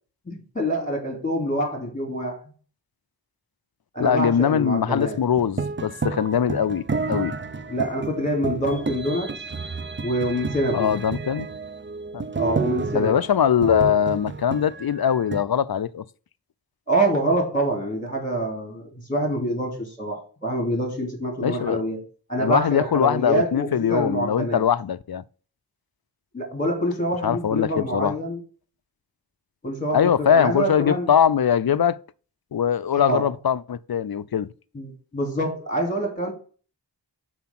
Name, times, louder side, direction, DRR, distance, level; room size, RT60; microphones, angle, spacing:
voice 1, 0.3-2.4 3.9-5.2 7.7-9.3 10.0-11.0 12.4-13.1 16.9-22.0 22.3-24.6 26.3-28.4 29.6-31.1 32.9-33.3 34.7-36.3, right 1 dB, 15° left, 2.9 m, -26 dB
voice 2, 4.0-7.3 10.7-11.5 12.1-12.2 12.9-16.0 21.4-21.8 22.4-25.2 27.2-28.1 29.9-32.0 32.5-34.5, left 8 dB, 55° left, 0.5 m, -22 dB
sound 1, 5.0-15.4, right 4 dB, 25° right, 0.5 m, -31 dB
5.7 x 4.7 x 5.9 m
wide cardioid pair, 40°, 44 cm